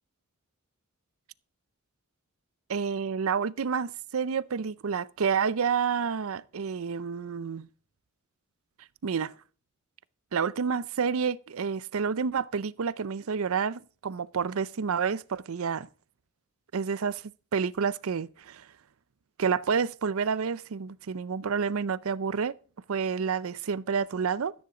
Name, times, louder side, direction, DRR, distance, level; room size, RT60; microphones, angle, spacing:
voice 1, 2.7-7.7 9.0-9.3 10.3-15.9 16.7-18.7 19.4-22.5 22.9-24.5, right 6 dB, 85° right, 0.5 m, -29 dB
13.5 x 9.5 x 5.0 m
head